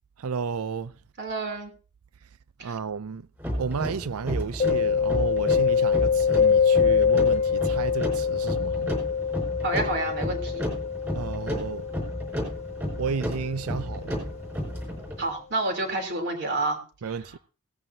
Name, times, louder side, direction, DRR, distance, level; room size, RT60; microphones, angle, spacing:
voice 1, 0.2-0.9 2.6-3.3 3.6-9.0 11.1-11.9 12.9-14.2 17.0-17.4, right 5 dB, 80° right, 0.5 m, -32 dB
voice 2, 1.2-1.7 2.6-2.8 9.6-10.6 15.2-16.8 17.0-17.1, right 2 dB, 50° right, 3.3 m, -29 dB
sound 1, 3.4-15.2, equal, 10° right, 4.9 m, -33 dB
Mallet percussion, 4.6-14.2, left 6 dB, 30° left, 0.6 m, -25 dB
17.5 x 13.5 x 2.8 m
head